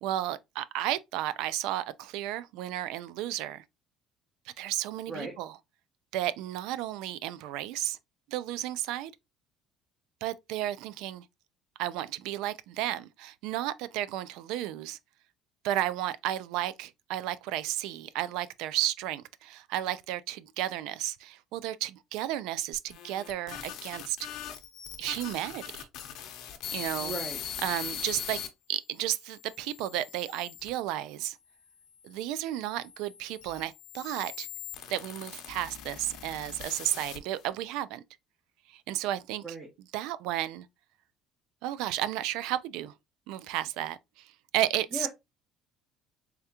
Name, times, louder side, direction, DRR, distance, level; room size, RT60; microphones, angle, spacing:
voice 1, 0.0-3.6 4.6-5.6 6.1-8.0 8.3-9.1 10.2-11.2 11.8-15.0 15.6-24.2 25.0-25.9 26.7-27.1 27.6-31.4 32.0-34.5 34.9-38.0 38.7-39.5 39.9-40.7 41.6-42.9 43.3-45.1, right 13 dB, 80° right, 0.3 m, -33 dB
sound 1, 22.7-28.5 29.1-30.7 31.5-37.5, left 9 dB, 65° left, 0.7 m, -41 dB
voice 2, 27.0-27.4 39.4-39.7 44.9-45.1, right 1 dB, 15° right, 1.0 m, -36 dB
3.5 x 3.4 x 2.8 m
cardioid pair, 130°, 0 cm